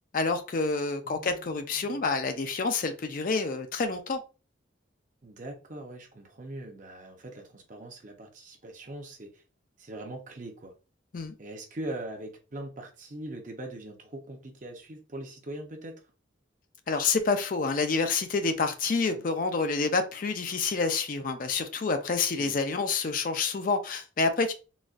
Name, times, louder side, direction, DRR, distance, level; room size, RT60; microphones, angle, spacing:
voice 1, 0.1-4.2 11.1-11.3 16.9-24.5, left 4 dB, 45° left, 0.4 m, -28 dB
voice 2, 1.0-2.0 5.2-9.4 9.8-10.7 11.4-16.0 19.1-19.2 22.4-22.6, right 1 dB, 40° right, 0.7 m, -41 dB
4.0 x 2.3 x 2.4 m
head